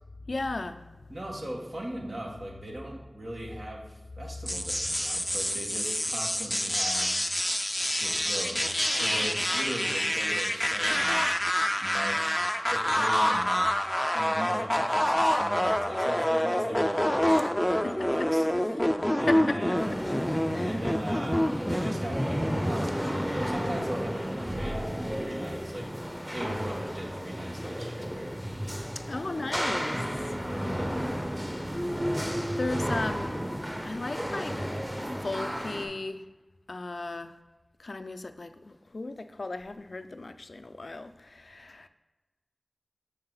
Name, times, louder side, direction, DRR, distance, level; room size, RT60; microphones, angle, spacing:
voice 1, 0.3-1.1 17.8-18.3 19.3-20.0 20.3-20.8 29.1-30.0 32.0-33.4 33.8-36.2 36.7-37.4 37.8-41.9, left 2 dB, 70° left, 10 dB, 0.3 m, -36 dB
voice 2, 1.1-7.2 7.9-11.2 11.8-19.9 20.6-25.9 26.3-28.6 30.3-31.3, right 1 dB, 60° right, -1 dB, 1.4 m, -39 dB
sound 1, 4.5-22.9, equal, 10° left, 0.5 m, -27 dB
sound 2, 19.7-35.9, equal, 15° right, 1.2 m, -33 dB
6.1 x 5.5 x 3.9 m, 1.2 s
wide cardioid pair, 45°, 0 cm